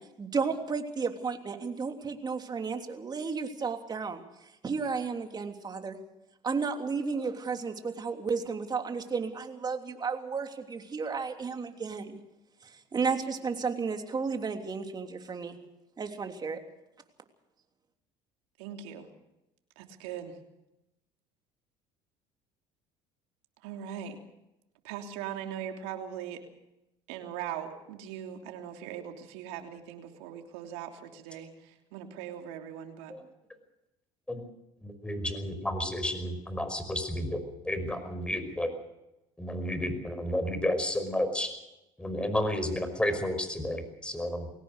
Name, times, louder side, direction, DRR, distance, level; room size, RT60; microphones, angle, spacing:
voice 1, 0.0-6.0 6.4-12.2 12.6-15.6 16.0-16.6, right 5 dB, 30° right, 5 dB, 3.2 m, -33 dB
voice 2, 18.6-19.1 19.8-20.4 23.6-24.2 24.8-26.4 27.1-33.1, right 9 dB, 80° right, 4 dB, 3.1 m, -40 dB
voice 3, 34.8-38.7 39.4-41.5 42.0-44.5, left 1 dB, 5° left, 9 dB, 5.5 m, -31 dB
22.0 x 18.0 x 6.6 m, 0.91 s
supercardioid pair, 85°, 14 cm